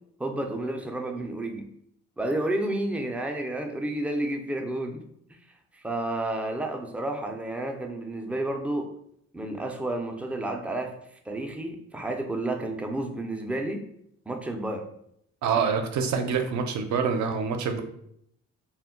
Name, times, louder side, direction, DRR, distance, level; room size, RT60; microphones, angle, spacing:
voice 1, 0.2-1.7 2.2-5.0 5.7-8.9 9.3-10.9 11.3-13.8 14.3-14.8, right 1 dB, 5° right, 3 dB, 0.3 m, -31 dB
voice 2, 15.4-17.8, right 6 dB, 70° right, 6 dB, 0.5 m, -26 dB
2.2 x 2.1 x 3.6 m, 0.72 s
cardioid pair, 90°, 30 cm